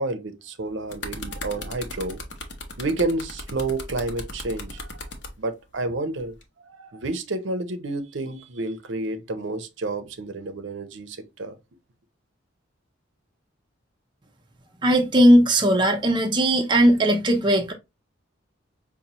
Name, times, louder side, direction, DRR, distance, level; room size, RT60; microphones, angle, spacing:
voice 1, 0.0-2.2 2.8-5.0 5.4-6.4 6.6-11.5, right 2 dB, 65° right, 0.6 m, -30 dB
sound 1, 0.6-5.3 6.2-6.4, left 2 dB, 60° left, 0.9 m, -37 dB
voice 2, 14.8-17.7, equal, 20° right, 0.5 m, -18 dB
5.3 x 2.2 x 2.9 m
head